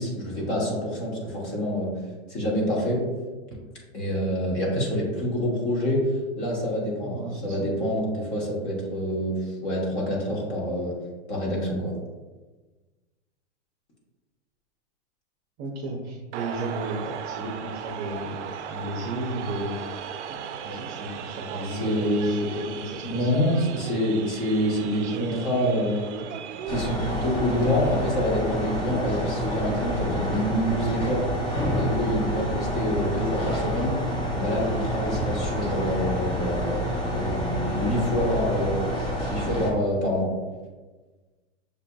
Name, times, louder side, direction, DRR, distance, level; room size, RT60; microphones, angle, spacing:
voice 1, 0.0-1.9 2.3-3.0 3.9-6.0 6.4-7.2 7.4-10.9 11.3-11.9 21.7-22.5 23.0-26.0 26.7-31.2 31.7-33.9 34.3-38.8 39.3-40.3, equal, 35° left, -3 dB, 1.2 m, -26 dB
voice 2, 7.0-7.7 10.3-10.5 15.6-19.8 20.3-23.3 25.0-25.8, right 2 dB, 35° right, -1 dB, 0.7 m, -34 dB
sound 1, 16.3-30.5, right 8 dB, 75° right, 0.5 m, -38 dB
sound 2, 26.7-39.7, equal, 15° left, 0.7 m, -28 dB
6.9 x 2.5 x 2.3 m, 1.3 s
hypercardioid pair, 145°, 35 cm